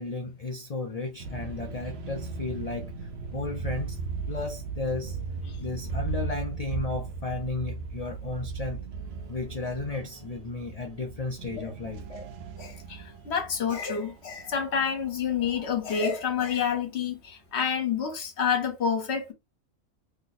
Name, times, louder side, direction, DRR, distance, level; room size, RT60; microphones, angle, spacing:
voice 1, 0.0-5.2 5.6-8.9 9.3-12.3, left 3 dB, 80° left, 0.3 m, -34 dB
sound 1, 1.2-16.7, right 5 dB, 60° right, 0.8 m, -37 dB
voice 2, 12.6-19.3, left 7 dB, 55° left, 1.1 m, -28 dB
3.0 x 2.0 x 4.0 m
omnidirectional pair, 1.4 m